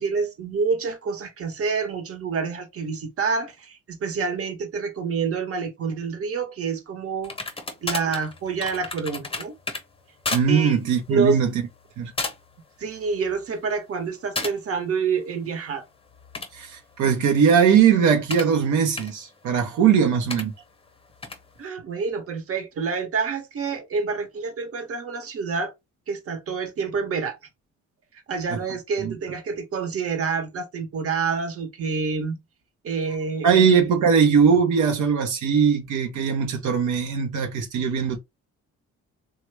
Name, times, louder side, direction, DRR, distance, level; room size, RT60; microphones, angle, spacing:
voice 1, 0.0-7.3 7.8-9.5 10.5-10.8 11.1-11.4 12.8-15.8 21.6-25.7 26.1-27.4 28.3-32.4 32.8-33.7, right 5 dB, 50° right, 1.0 m, -27 dB
sound 1, 7.2-9.8 10.2-10.5 10.8-11.1 11.7-11.9 12.2-12.6 13.0-13.4 14.4-14.6 16.1-18.5 19.0-19.1 20.3-20.4 21.2-21.4, left 3 dB, 20° left, 0.8 m, -32 dB
voice 2, 10.3-11.5 12.0-12.1 16.5-20.5 29.0-29.1 33.4-38.2, right 7 dB, 85° right, 0.7 m, -20 dB
3.0 x 2.2 x 3.2 m
cardioid pair, 90°, 30 cm